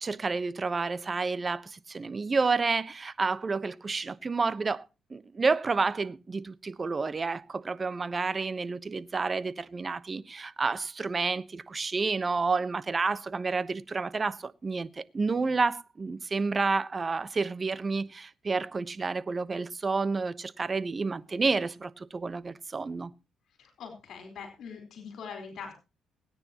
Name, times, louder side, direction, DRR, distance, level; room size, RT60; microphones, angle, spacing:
voice 1, 0.0-4.8 5.1-23.1, right 4 dB, 30° right, 1.0 m, -30 dB
voice 2, 23.6-25.7, left 6 dB, 70° left, 4.4 m, -42 dB
23.0 x 9.9 x 3.0 m
cardioid pair, 90°, 0 cm